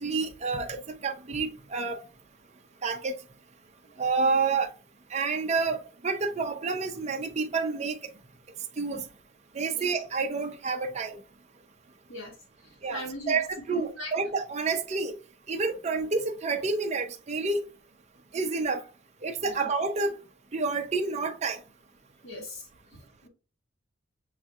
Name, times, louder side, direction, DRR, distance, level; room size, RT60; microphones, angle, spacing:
voice 1, 0.0-2.0 2.8-3.2 4.0-4.7 5.1-8.1 8.8-9.1 9.5-11.2 12.8-15.1 15.5-17.6 18.3-18.8 19.2-20.2 20.5-21.6, right 4 dB, 35° right, 0.5 m, -29 dB
voice 2, 12.9-13.4 13.7-14.1 19.4-19.7 22.2-22.7 22.9-23.3, equal, 85° left, 1.6 m, -39 dB
7.2 x 2.6 x 2.4 m
head